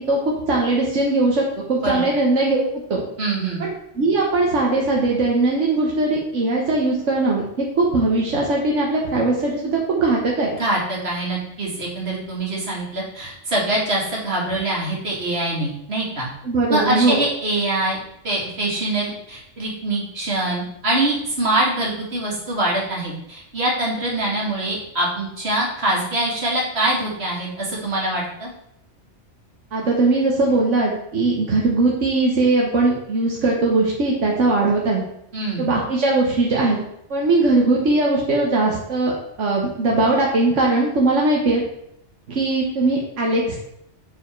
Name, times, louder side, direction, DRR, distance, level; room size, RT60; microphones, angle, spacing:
voice 1, 0.0-3.0 3.6-3.7 4.0-10.5 16.4-17.2 29.7-35.0 35.6-36.8 37.1-39.1 39.4-41.6 42.3-43.6, right 2 dB, 85° right, -3 dB, 1.5 m, -20 dB
voice 2, 3.2-3.6 10.6-16.3 16.7-18.0 18.2-28.5 35.3-35.7, right 1 dB, 60° right, -3 dB, 2.4 m, -24 dB
7.3 x 5.0 x 4.5 m, 0.75 s
omnidirectional pair, 1.2 m